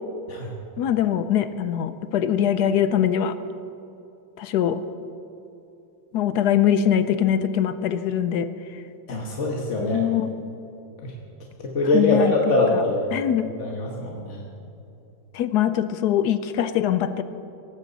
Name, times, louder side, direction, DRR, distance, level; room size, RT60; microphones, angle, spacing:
voice 1, 0.8-3.3 4.4-4.8 6.1-8.5 9.9-10.3 11.9-12.3 12.7-12.8 13.1-13.5 15.3-17.2, left 10 dB, 70° left, 12 dB, 1.0 m, -22 dB
voice 2, 9.1-10.0 11.0-11.1 11.6-13.1 13.6-14.5, left 2 dB, 40° left, -1 dB, 1.4 m, -23 dB
18.0 x 15.0 x 4.0 m, 2.7 s
omnidirectional pair, 2.2 m